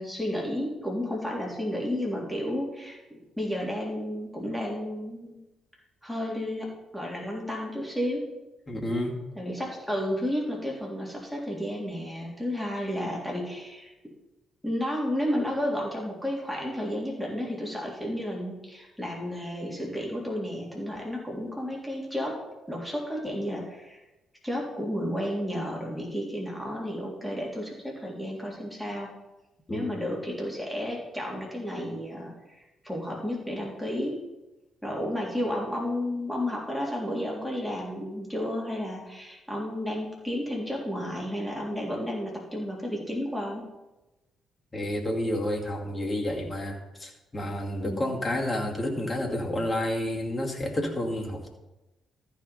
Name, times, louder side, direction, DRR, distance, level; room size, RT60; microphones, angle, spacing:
voice 1, 0.0-5.4 6.0-8.2 9.4-13.9 14.6-22.4 22.7-24.0 24.4-29.1 29.7-34.2 34.8-43.7 47.9-48.3, equal, ahead, -3 dB, 3.5 m, -32 dB
voice 2, 8.7-9.2 29.7-29.9 44.7-51.5, left 1 dB, 25° left, -1 dB, 2.4 m, -30 dB
14.0 x 5.1 x 5.4 m, 1.0 s
figure-of-eight pair, 40°, 0 cm